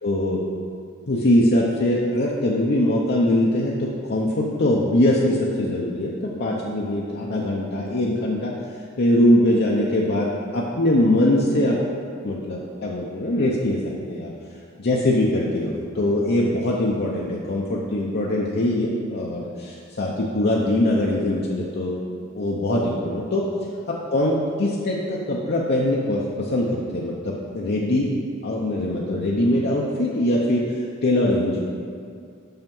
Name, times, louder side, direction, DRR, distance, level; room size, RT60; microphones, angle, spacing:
voice 1, 0.0-0.4 1.1-8.5 9.0-11.8 12.2-14.3 14.8-22.0 22.3-23.4 24.1-28.1 28.4-31.6, left 1 dB, 55° left, -4 dB, 0.7 m, -22 dB
5.7 x 5.7 x 5.4 m, 2.3 s
head